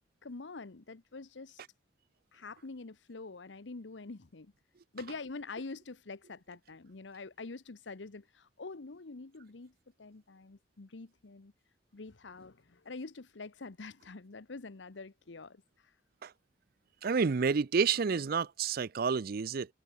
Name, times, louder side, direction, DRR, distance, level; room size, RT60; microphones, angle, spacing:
voice 1, 0.2-1.6 2.3-4.5 4.9-9.7 10.0-11.5 11.9-15.9, left 3 dB, 75° left, 0.9 m, -46 dB
voice 2, 17.0-19.7, right 5 dB, 55° right, 0.5 m, -29 dB
head